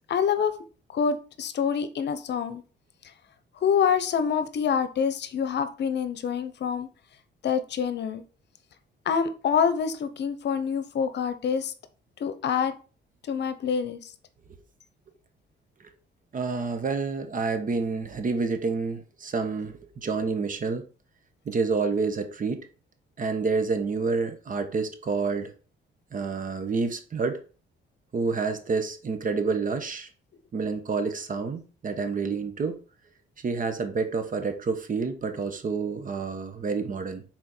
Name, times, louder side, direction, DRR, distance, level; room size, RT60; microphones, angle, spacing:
voice 1, 0.1-0.6 0.9-2.6 3.6-6.9 7.4-8.2 9.1-11.7 12.2-12.7 13.2-14.1, left 7 dB, 60° left, 0.8 m, -26 dB
voice 2, 16.3-20.9 21.4-22.7 23.2-25.5 26.1-27.4 28.1-30.1 30.5-32.8 33.4-37.2, right 4 dB, 45° right, 1.2 m, -28 dB
6.3 x 4.2 x 4.4 m
cardioid pair, 90°, 20 cm